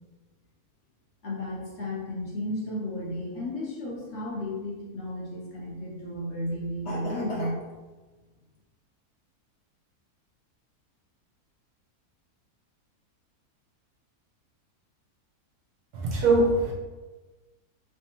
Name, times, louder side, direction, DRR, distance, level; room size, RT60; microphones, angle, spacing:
voice 1, 1.2-7.6, left 1 dB, 55° left, -4 dB, 0.8 m, -33 dB
voice 2, 15.9-16.7, right 2 dB, 85° right, -2 dB, 1.4 m, -22 dB
3.4 x 3.3 x 2.8 m, 1.2 s
omnidirectional pair, 1.6 m